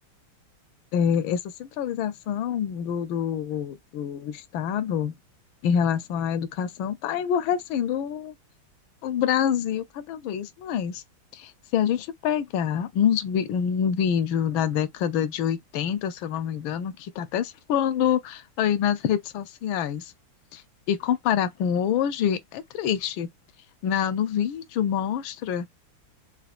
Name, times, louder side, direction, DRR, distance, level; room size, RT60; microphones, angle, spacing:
voice 1, 0.9-5.2 5.6-8.3 9.0-11.0 11.3-20.1 20.5-20.6 20.9-23.3 23.8-25.7, left 8 dB, 75° left, 1.4 m, -26 dB
5.7 x 2.3 x 2.4 m
omnidirectional pair, 2.3 m